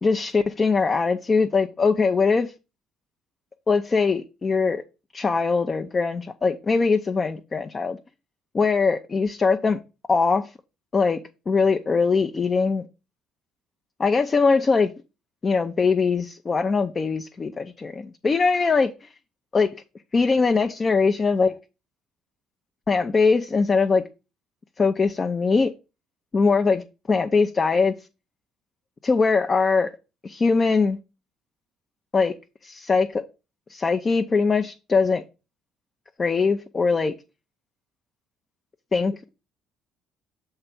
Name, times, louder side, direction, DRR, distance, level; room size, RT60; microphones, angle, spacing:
voice 1, 0.0-2.5 3.7-4.8 5.1-8.0 8.5-9.8 10.1-10.5 10.9-11.2 11.5-12.8 14.0-14.9 15.4-19.1 19.5-19.7 20.1-21.5 22.9-24.0 24.8-25.7 26.3-27.9 29.0-29.9 30.2-31.0 32.1-32.4 32.6-33.2 33.7-35.2 36.2-37.1 38.9-39.3, left 4 dB, 35° left, 0.6 m, -21 dB
6.7 x 3.4 x 5.8 m
hypercardioid pair, 55°, 0 cm